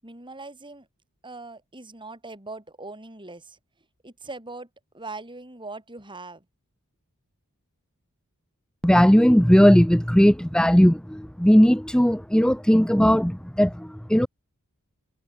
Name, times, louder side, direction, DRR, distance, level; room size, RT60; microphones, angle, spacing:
voice 1, 0.0-0.9 1.2-3.6 4.0-4.7 4.9-6.5, right 3 dB, 20° right, 7.4 m, -40 dB
voice 2, 8.8-14.3, equal, 5° left, 0.8 m, -18 dB
head